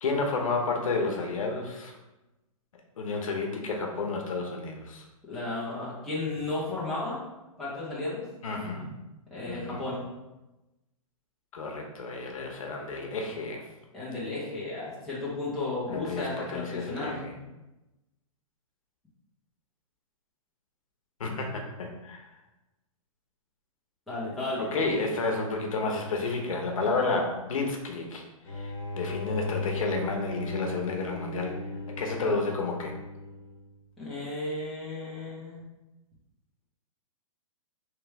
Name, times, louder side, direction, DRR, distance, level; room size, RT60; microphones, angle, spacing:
voice 1, 0.0-1.9 3.0-5.0 8.4-8.9 9.5-9.8 11.5-13.6 15.9-17.3 21.2-22.3 24.6-28.2 28.5-31.5 32.0-32.9, left 3 dB, 65° left, 1 dB, 0.9 m, -31 dB
voice 2, 5.3-7.2 7.6-8.2 9.3-10.0 13.9-17.3 24.1-24.7 34.0-35.7, left 2 dB, ahead, -10 dB, 0.9 m, -34 dB
sound 1, 28.4-33.8, left 2 dB, 45° left, 1.3 m, -37 dB
3.3 x 3.0 x 4.6 m, 1.0 s
hypercardioid pair, 165°, 18 cm